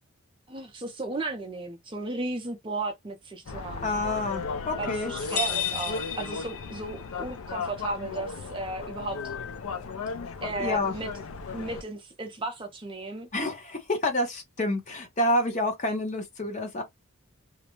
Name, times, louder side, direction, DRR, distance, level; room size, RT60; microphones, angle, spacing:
voice 1, 0.5-3.9 4.8-9.2 10.4-11.1 11.5-13.3, right 2 dB, 25° right, 0.5 m, -35 dB
sound 1, 3.5-11.8, left 5 dB, 70° left, 0.4 m, -36 dB
voice 2, 3.5-5.1 10.6-10.9 13.3-16.8, left 1 dB, 35° left, 0.8 m, -28 dB
sound 2, 5.2-7.1, left 7 dB, 90° left, 0.9 m, -32 dB
2.5 x 2.1 x 2.8 m
head